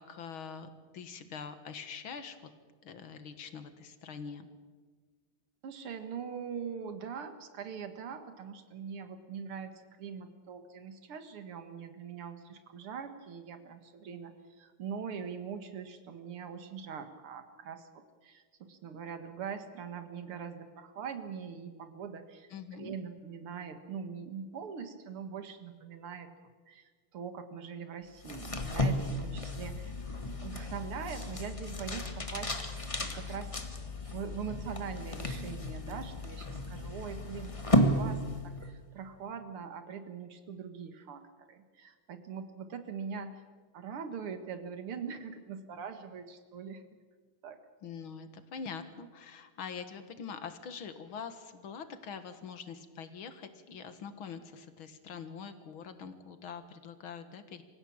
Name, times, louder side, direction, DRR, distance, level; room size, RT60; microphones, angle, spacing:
voice 1, 0.0-2.4 2.8-4.5 22.5-23.0 47.8-57.6, left 6 dB, 70° left, 10 dB, 2.3 m, -44 dB
voice 2, 5.6-26.3 26.7-29.9 30.4-33.6 34.0-43.4 43.7-46.8 47.4-47.6, right 6 dB, 85° right, 9 dB, 2.6 m, -42 dB
sound 1, 28.2-38.7, left 1 dB, 15° left, 1.3 m, -33 dB
25.5 x 16.0 x 8.8 m, 1.5 s
omnidirectional pair, 2.4 m